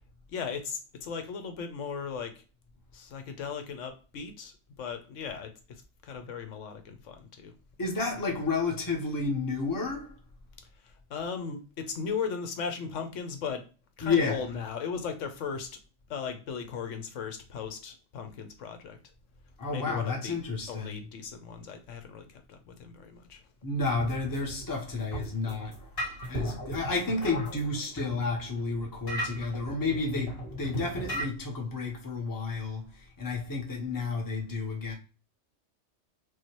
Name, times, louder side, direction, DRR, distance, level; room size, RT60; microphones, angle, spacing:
voice 1, 0.3-2.4 2.9-7.5 10.7-13.7 14.0-15.8 16.1-19.0 19.7-20.4 20.7-23.4, left 6 dB, 80° left, 1.0 m, -37 dB
voice 2, 7.8-10.2 14.0-14.5 19.6-21.0 23.6-34.9, left 3 dB, 20° left, 0.8 m, -31 dB
sound 1, 23.8-31.3, right 1 dB, 50° left, 1.7 m, -38 dB
4.7 x 2.3 x 2.9 m
omnidirectional pair, 1.3 m